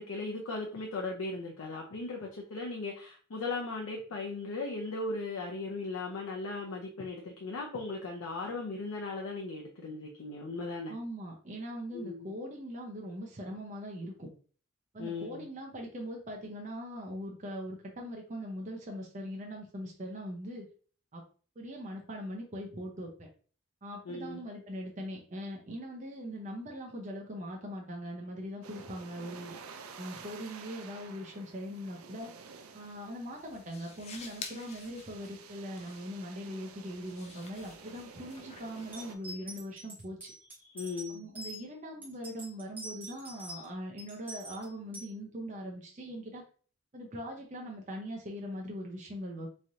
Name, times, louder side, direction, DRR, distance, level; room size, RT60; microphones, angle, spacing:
voice 1, 0.0-11.0 11.9-12.3 15.0-15.5 24.1-24.4 40.6-41.2, left 3 dB, 80° left, 0.5 m, -37 dB
voice 2, 10.9-14.3 14.9-20.6 21.1-21.2 21.6-23.3 23.8-29.5 30.0-32.3 32.7-40.3 41.1-46.4 46.9-49.5, equal, 35° right, 0.5 m, -41 dB
sound 1, 28.6-39.1, right 5 dB, 85° right, 0.4 m, -51 dB
sound 2, 32.8-39.7, left 5 dB, 30° left, 0.3 m, -50 dB
sound 3, 38.9-41.6 42.0-43.7 44.0-45.1, right 1 dB, 10° right, 0.9 m, -45 dB
3.1 x 2.5 x 2.7 m
head